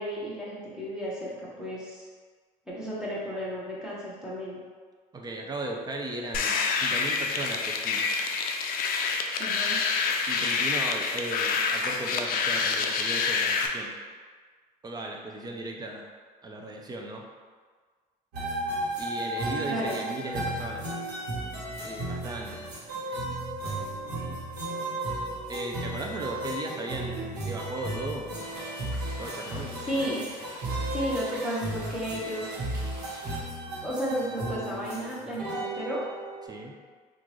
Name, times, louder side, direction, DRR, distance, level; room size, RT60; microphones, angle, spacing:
voice 1, 0.0-1.3 1.6-2.1 2.7-4.6 9.4-9.8 19.7-20.1 29.9-30.2 30.9-32.5 33.8-36.0, equal, 5° right, -7 dB, 1.1 m, -33 dB
voice 2, 5.1-8.1 10.3-13.9 14.8-16.1 16.4-17.2 19.0-20.9 21.8-22.6 24.3-24.4 25.5-28.3 29.2-29.8 36.4-36.8, right 2 dB, 25° right, 1 dB, 0.5 m, -36 dB
sound 1, 6.3-13.7, left 5 dB, 60° left, 0.4 m, -27 dB
sound 2, 18.3-36.5, right 1 dB, 90° right, 1.2 m, -34 dB
sound 3, 28.3-33.4, right 1 dB, 55° right, 1.2 m, -46 dB
3.7 x 2.5 x 3.1 m, 1.5 s
cardioid pair, 110°, 17 cm